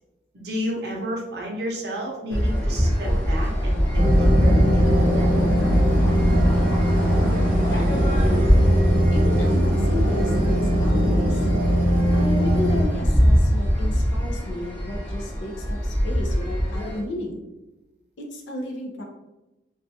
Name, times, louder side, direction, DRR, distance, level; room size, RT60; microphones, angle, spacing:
voice 1, 0.3-3.8 4.1-5.5, equal, 60° right, -1 dB, 0.6 m, -31 dB
sound 1, 2.3-17.0, equal, 10° left, 0.6 m, -24 dB
sound 2, 4.0-12.9, equal, 80° right, 0.9 m, -20 dB
voice 2, 7.0-8.5 9.1-11.5 12.1-17.4 18.2-19.0, left 1 dB, 90° left, 0 dB, 0.5 m, -33 dB
2.4 x 2.2 x 2.6 m, 1.0 s
head